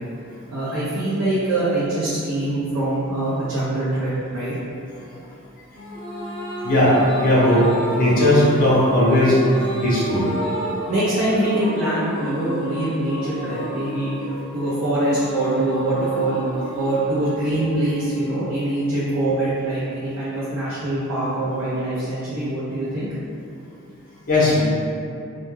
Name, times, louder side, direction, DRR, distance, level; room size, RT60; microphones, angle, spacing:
voice 1, 0.5-4.9 10.9-16.4 16.7-23.1, right 1 dB, 75° right, -11 dB, 0.6 m, -24 dB
sound 1, 5.7-19.3, equal, ahead, 0.8 m, -31 dB
voice 2, 6.6-7.7 7.9-9.4 9.8-10.3 24.3-24.6, left 1 dB, 40° left, -7 dB, 0.6 m, -17 dB
2.2 x 2.1 x 3.1 m, 2.6 s
head